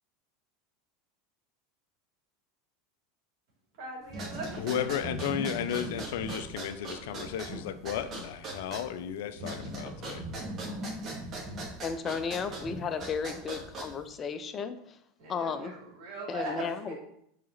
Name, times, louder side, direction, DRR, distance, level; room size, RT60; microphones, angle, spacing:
voice 1, 3.8-4.7 11.3-11.6 15.2-17.0, right 2 dB, 55° right, -2 dB, 2.8 m, -40 dB
sound 1, 4.1-14.1, right 1 dB, 35° right, 2.1 m, -39 dB
voice 2, 4.6-10.2, left 9 dB, 65° left, 12 dB, 0.6 m, -34 dB
voice 3, 11.8-15.0 15.3-15.7 16.3-17.0, left 6 dB, 30° left, 9 dB, 0.7 m, -34 dB
7.5 x 4.1 x 4.0 m, 0.71 s
figure-of-eight pair, 80°, 0 cm